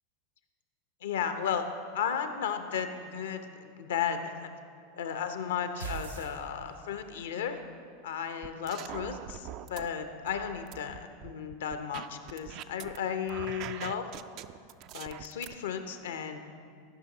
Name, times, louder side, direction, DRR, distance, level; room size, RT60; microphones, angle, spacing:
voice 1, 1.0-1.7 1.9-4.5 4.9-7.6 8.0-14.1 14.9-16.4, left 7 dB, 70° left, 8 dB, 0.7 m, -34 dB
sound 1, 5.8-7.1, right 5 dB, 90° right, 0.8 m, -40 dB
sound 2, 8.4-9.9 10.3-13.0 13.3-15.5, right 12 dB, 50° right, 0.3 m, -43 dB
13.0 x 5.7 x 4.0 m, 2.2 s
figure-of-eight pair, 85°, 0 cm